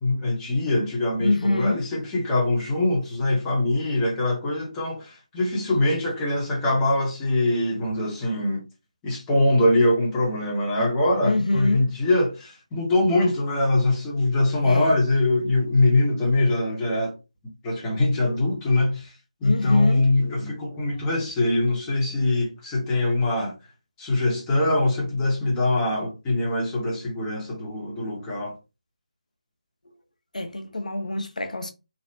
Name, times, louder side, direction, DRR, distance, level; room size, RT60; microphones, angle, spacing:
voice 1, 0.0-8.6 9.0-17.2 17.6-19.1 19.4-23.5 24.0-28.6, left 2 dB, 10° left, 0.8 m, -23 dB
voice 2, 1.2-1.8 11.2-11.9 14.6-14.9 19.4-20.1 30.3-31.7, left 2 dB, 80° left, 0.7 m, -25 dB
3.2 x 2.0 x 2.7 m
figure-of-eight pair, 155°, 4 cm